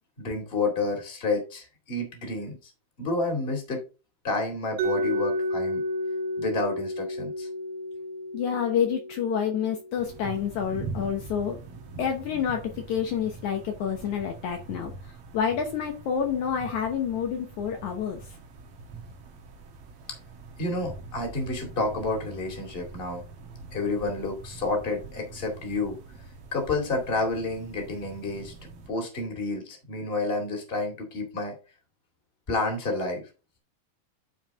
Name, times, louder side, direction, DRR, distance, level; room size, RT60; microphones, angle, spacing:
voice 1, 0.2-2.5 3.0-3.8 4.2-5.8 6.4-7.5 20.1-20.2 20.6-23.2 23.7-26.0 26.5-28.5 28.9-31.5 32.5-33.2, left 3 dB, 20° left, 3 dB, 2.0 m, -30 dB
Mallet percussion, 4.8-10.6, left 1 dB, 80° right, 2.5 m, -32 dB
voice 2, 8.3-11.6 12.0-18.3, left 7 dB, 70° left, 3 dB, 2.1 m, -28 dB
sound 1, 10.0-28.9, right 4 dB, 60° right, 1.8 m, -43 dB
11.0 x 4.7 x 3.6 m, 0.33 s
omnidirectional pair, 4.0 m